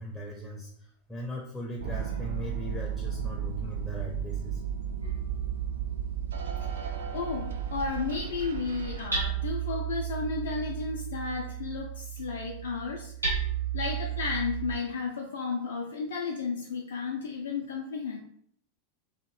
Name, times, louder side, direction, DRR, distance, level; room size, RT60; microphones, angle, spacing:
voice 1, 0.0-4.6, equal, 10° left, -2 dB, 0.5 m, -39 dB
sound 1, 1.8-9.1, right 7 dB, 65° right, 0.3 m, -34 dB
Hammer, 5.0-14.8, right 8 dB, 85° right, 1.5 m, -35 dB
voice 2, 6.8-13.3 13.7-18.2, left 4 dB, 60° left, 1 dB, 0.3 m, -33 dB
2.7 x 2.4 x 3.0 m, 0.65 s
figure-of-eight pair, 90°, 0 cm